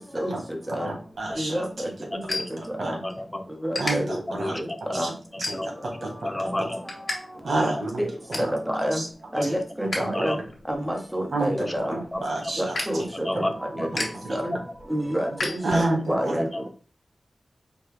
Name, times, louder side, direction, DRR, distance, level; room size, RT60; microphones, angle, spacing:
voice 1, 0.8-1.9 2.6-3.0 3.8-4.6 4.9-5.1 5.4-5.6 6.0-6.5 7.4-8.0 8.3-8.5 8.9-9.1 9.4-9.5 10.0-10.2 11.3-13.1 13.9-14.4 15.6-16.4, right 2 dB, 85° right, 0 dB, 1.2 m, -29 dB
sound 1, 1.1-3.2 3.5-3.9 4.5-4.7 5.3-6.0 6.4-7.2 7.5-7.6 7.9-8.6 9.0-10.0 10.4-16.1, left 2 dB, 75° left, 1.4 m, -34 dB
voice 2, 1.4-1.7 2.8-3.0 3.6-4.1 4.5-4.6 4.9-5.1 7.6-7.7 8.0-8.1 8.7-9.0 9.3-10.4 10.7-12.0 12.6-13.3 13.8-13.9 14.3-14.5 14.9-15.8 16.1-16.5, equal, 10° right, 2 dB, 1.0 m, -28 dB
voice 3, 2.1-2.5 3.0-3.5 4.3-5.1 5.3-5.9 6.2-6.8 9.3-9.5 10.1-10.4 11.5-11.8 12.1-12.5 13.1-13.9 14.5-14.6 15.7-16.0 16.4-16.7, left 1 dB, 20° left, 7 dB, 0.5 m, -32 dB
5.1 x 2.3 x 3.2 m, 0.39 s
cardioid pair, 55°, 0 cm